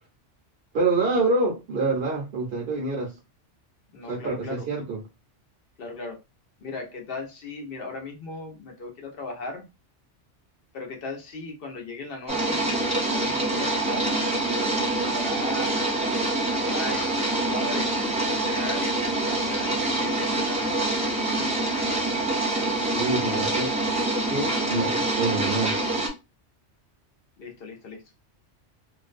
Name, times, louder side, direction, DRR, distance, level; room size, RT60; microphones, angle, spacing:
voice 1, 0.7-3.1 4.1-5.0 22.9-23.7 24.2-25.8, right 3 dB, 60° right, 0.8 m, -26 dB
voice 2, 3.9-4.7 5.8-6.2 6.6-9.7 10.7-14.1 14.4-16.1 16.5-19.0 19.5-22.4 27.4-28.0, left 2 dB, 60° left, 0.8 m, -38 dB
sound 1, 12.3-26.1, right 2 dB, 10° right, 0.5 m, -25 dB
2.5 x 2.1 x 2.4 m
omnidirectional pair, 1.2 m